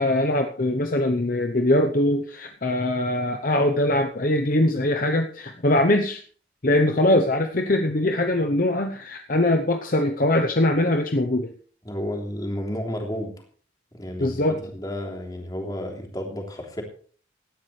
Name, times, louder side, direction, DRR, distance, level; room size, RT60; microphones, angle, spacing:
voice 1, 0.0-6.2 6.6-11.5 14.2-14.6, left 1 dB, 45° left, 5 dB, 0.9 m, -22 dB
voice 2, 11.8-13.3 13.9-14.4 14.7-16.8, equal, 20° left, 1 dB, 3.3 m, -31 dB
18.0 x 12.0 x 3.3 m, 0.44 s
head